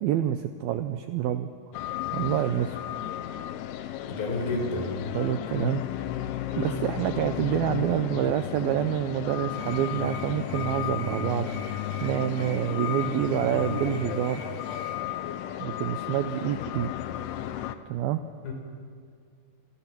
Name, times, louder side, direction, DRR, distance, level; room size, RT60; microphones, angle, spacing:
voice 1, 0.0-1.5 2.1-2.8 5.1-5.8 6.5-14.4 15.6-16.9 17.9-18.2, right 11 dB, 80° right, 9 dB, 2.2 m, -27 dB
sound 1, 1.7-17.8, left 12 dB, 75° left, 2.8 m, -34 dB
voice 2, 4.1-4.9 6.5-6.8 18.4-18.5, left 3 dB, 55° left, 1 dB, 6.2 m, -30 dB
sound 2, 9.5-15.0, equal, 15° right, 5.5 m, -40 dB
29.0 x 24.0 x 6.0 m, 2.2 s
omnidirectional pair, 5.2 m